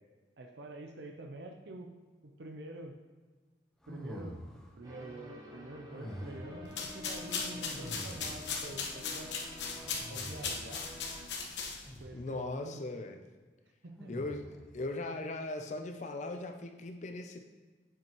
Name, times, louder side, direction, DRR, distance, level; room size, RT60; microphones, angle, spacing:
voice 1, 0.4-1.9 2.2-3.0 3.9-4.4 4.8-9.3 10.1-10.9 12.0-12.8 13.8-14.1, right 2 dB, 70° right, 3 dB, 0.7 m, -47 dB
sound 1, 3.8-4.8 5.9-6.6 7.7-8.6 9.7-10.8 11.8-12.4 14.0-14.7, equal, 5° left, 0.9 m, -46 dB
sound 2, 4.8-11.3, left 1 dB, 20° right, 1.1 m, -49 dB
sound 3, 6.7-12.0, left 5 dB, 80° left, 1.1 m, -38 dB
voice 2, 12.1-13.2 14.1-17.4, left 2 dB, 40° left, 5 dB, 0.5 m, -39 dB
7.9 x 7.4 x 3.0 m, 1.4 s
head